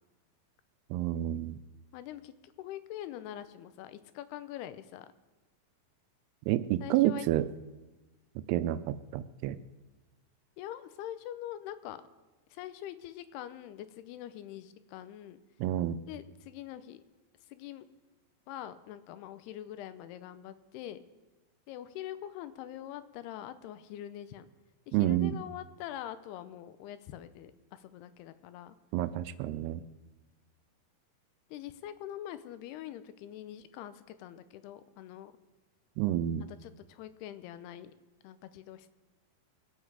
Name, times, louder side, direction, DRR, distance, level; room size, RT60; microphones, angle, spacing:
voice 1, 0.9-1.6 6.5-7.5 8.5-8.8 9.1-9.6 15.6-16.0 24.9-25.4 28.9-29.8 36.0-36.4, right 13 dB, 85° right, 13 dB, 2.6 m, -29 dB
voice 2, 1.9-5.1 6.8-7.3 10.6-12.0 12.5-15.4 16.1-17.0 17.5-17.9 18.5-21.0 21.7-24.5 24.9-28.8 31.5-35.3 36.5-37.9 38.2-38.9, left 12 dB, 85° left, 12 dB, 2.7 m, -44 dB
24.0 x 8.7 x 4.7 m, 1.1 s
omnidirectional pair, 4.6 m